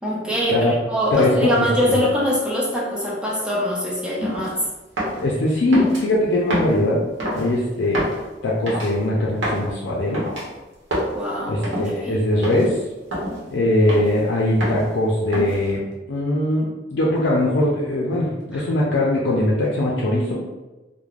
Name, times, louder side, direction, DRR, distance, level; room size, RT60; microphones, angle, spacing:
voice 1, 0.0-4.6 11.1-12.2 18.5-18.6, equal, 5° right, -5 dB, 0.4 m, -23 dB
voice 2, 1.1-2.0 5.2-7.0 7.3-8.1 8.4-10.2 11.5-12.8 13.5-20.4, left 1 dB, 70° left, -4 dB, 0.4 m, -21 dB
sound 1, 4.2-4.5 5.0-5.2 5.7-6.0 6.5-6.8 7.2-7.5 7.9-8.2 8.7-8.9 9.4-9.7 10.1-10.4 10.9-11.1 11.6-11.9 12.4-12.7 13.1-13.4 13.9-14.2 14.6-14.9 15.3-15.7, equal, 85° right, 0.9 m, -26 dB
3.1 x 2.0 x 2.4 m, 1.1 s
head